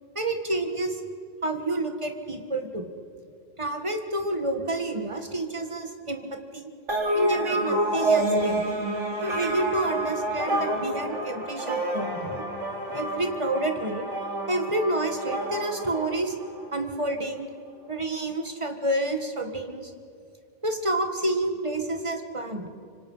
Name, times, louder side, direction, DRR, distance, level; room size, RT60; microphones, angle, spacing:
voice 1, 0.1-1.0 1.4-2.9 3.6-6.7 7.1-8.6 9.2-12.4 12.9-14.1 14.5-16.3 16.7-17.5 17.9-19.9 20.6-22.7, right 2 dB, 25° right, 6 dB, 1.7 m, -29 dB
sound 1, 6.9-16.7, right 1 dB, 65° right, 3.4 m, -28 dB
26.0 x 25.0 x 5.6 m, 2.4 s
omnidirectional pair, 1.3 m